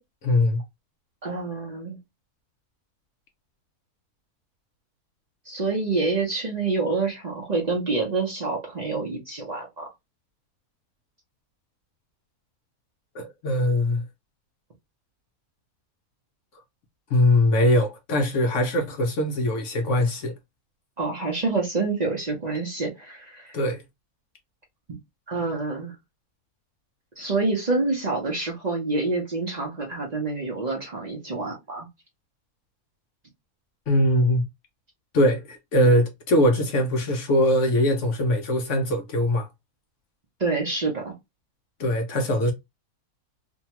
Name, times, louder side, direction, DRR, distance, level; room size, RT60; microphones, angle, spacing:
voice 1, 0.2-0.6 13.1-14.0 17.1-20.3 23.5-23.8 33.9-34.4 35.1-39.5 41.8-42.5, left 1 dB, 65° left, 0.8 m, -22 dB
voice 2, 1.2-2.0 5.5-9.9 21.0-23.6 24.9-25.0 25.3-25.9 27.2-31.9 40.4-41.1, right 3 dB, 50° right, 0.5 m, -27 dB
2.8 x 2.2 x 2.8 m
omnidirectional pair, 1.6 m